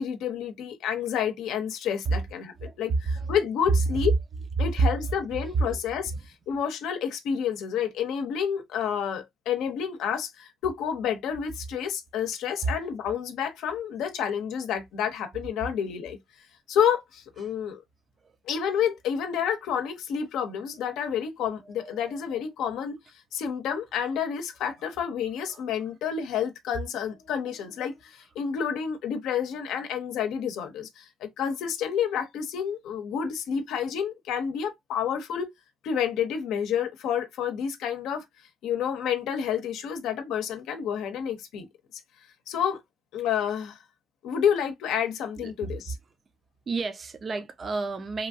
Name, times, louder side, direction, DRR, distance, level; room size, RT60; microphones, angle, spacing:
voice 1, 0.0-4.2 4.6-6.1 6.5-16.2 16.7-17.8 18.5-23.0 23.3-35.5 35.8-38.2 38.6-41.7 42.5-42.8 43.1-43.8 44.2-45.9, left 8 dB, 90° left, 0.6 m, -29 dB
voice 2, 2.6-3.3 5.6-5.8 6.1-6.2 12.6-12.9 18.2-18.3 21.6-22.4 25.5-25.6 45.4-45.8 46.7-48.3, right 3 dB, 40° right, 0.5 m, -31 dB
2.9 x 2.3 x 2.5 m
cardioid pair, 90°, 0 cm